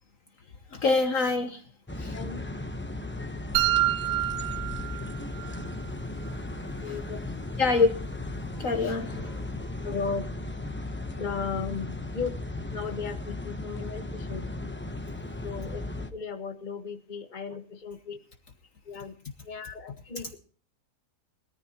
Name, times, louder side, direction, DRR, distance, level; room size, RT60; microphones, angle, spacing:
voice 1, 0.7-1.6 1.9-2.2 7.6-7.9 8.5-9.5, left 3 dB, 55° left, 7 dB, 1.4 m, -25 dB
sound 1, 1.9-16.1, left 2 dB, 10° left, 0.7 m, -36 dB
voice 2, 2.1-2.4 6.8-7.2 7.7-7.8 9.8-10.2 11.2-12.4 12.7-14.5 15.4-18.2 18.8-19.1 19.4-20.4, left 5 dB, 30° left, 6 dB, 1.5 m, -36 dB
sound 2, 3.5-5.6, right 15 dB, 70° right, 1.2 m, -27 dB
21.0 x 14.0 x 2.9 m, 0.42 s
omnidirectional pair, 1.7 m